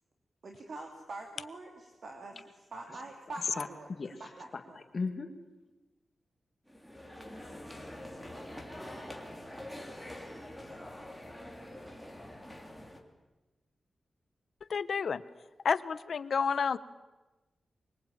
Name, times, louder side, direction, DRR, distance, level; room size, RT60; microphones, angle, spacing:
voice 1, 0.4-2.4 2.7-3.9 4.4-4.8, right 2 dB, 55° right, 2 dB, 3.0 m, -44 dB
voice 2, 3.4-5.3, left 4 dB, 40° left, 6 dB, 2.1 m, -39 dB
sound 1, 6.7-13.0, left 1 dB, 5° right, 3.3 m, -45 dB
voice 3, 14.7-15.2 15.6-16.8, left 6 dB, 65° left, 14 dB, 1.0 m, -30 dB
24.5 x 23.0 x 9.0 m, 1.1 s
wide cardioid pair, 125°, 0 cm